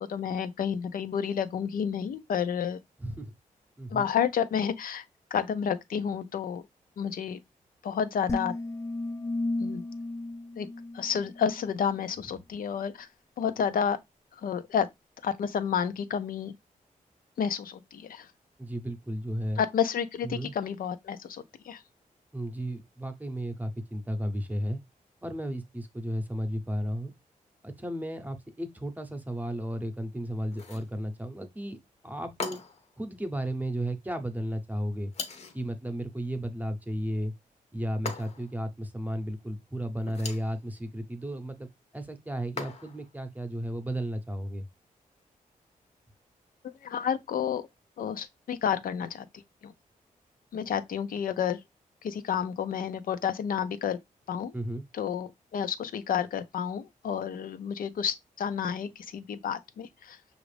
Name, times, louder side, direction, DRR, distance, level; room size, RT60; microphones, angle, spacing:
voice 1, 0.0-2.8 3.9-5.0 5.3-6.6 7.0-7.4 7.8-8.5 9.6-9.8 10.6-10.7 10.9-13.1 13.4-14.0 14.4-14.9 15.2-16.5 17.4-18.3 19.6-21.8 46.6-47.6 48.0-49.3 49.6-49.7 50.5-51.6 52.0-54.0 54.3-54.5 54.9-60.2, left 7 dB, 80° left, 0.5 m, -30 dB
voice 2, 3.0-3.3 3.8-4.1 18.6-19.6 20.2-20.5 22.3-24.8 25.2-27.1 27.6-31.8 32.0-32.6 33.0-35.1 35.5-37.3 37.7-44.7 54.5-54.8, equal, 10° right, 0.7 m, -34 dB
sound 1, 8.3-11.6, left 2 dB, 20° left, 0.4 m, -34 dB
sound 2, 30.5-30.9 32.4-32.9 35.1-35.6 38.1-38.6 40.0-40.5 42.6-43.1, left 4 dB, 50° left, 0.7 m, -39 dB
6.0 x 2.5 x 3.2 m
wide cardioid pair, 135°, 14 cm